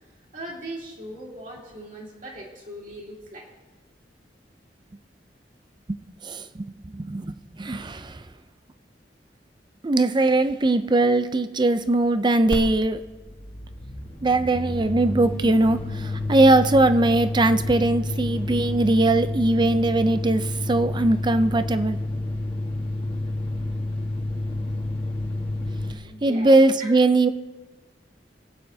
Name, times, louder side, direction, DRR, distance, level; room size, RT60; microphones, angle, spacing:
voice 1, 0.3-3.5 26.0-27.0, right 1 dB, 50° right, -3 dB, 2.7 m, -39 dB
voice 2, 5.9-8.2 9.8-13.0 14.2-22.0 26.2-27.3, right 2 dB, 25° right, 11 dB, 0.5 m, -21 dB
sound 1, 12.5-12.6 12.9-25.9, left 1 dB, 30° left, 1.4 m, -29 dB
25.0 x 9.0 x 2.7 m, 1.2 s
head